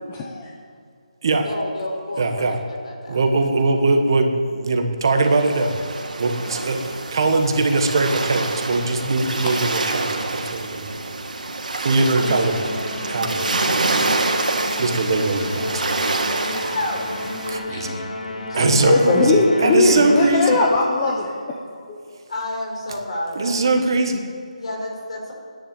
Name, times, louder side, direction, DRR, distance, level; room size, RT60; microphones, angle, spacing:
voice 1, 0.1-0.5 17.7-17.8 18.9-21.3 21.9-22.2, left 3 dB, 15° left, -1 dB, 0.9 m, -19 dB
voice 2, 1.4-3.2 6.4-6.6 14.1-14.6 16.5-17.1 18.5-19.2 21.0-21.2 22.3-23.7 24.6-25.3, left 1 dB, 50° left, 0 dB, 4.8 m, -30 dB
voice 3, 2.2-2.6 3.1-5.8 6.2-6.8 7.1-10.9 11.8-12.7 13.1-13.5 14.8-16.0 16.4-16.8 17.5-18.0 18.5-20.6 23.3-24.2, right 3 dB, 35° right, 4 dB, 1.3 m, -21 dB
sound 1, 5.3-17.5, right 3 dB, 80° right, 2.5 m, -27 dB
Musical instrument, 12.2-20.7, left 2 dB, 85° left, 2.4 m, -32 dB
13.5 x 10.5 x 8.9 m, 2.3 s
hypercardioid pair, 175°, 4 cm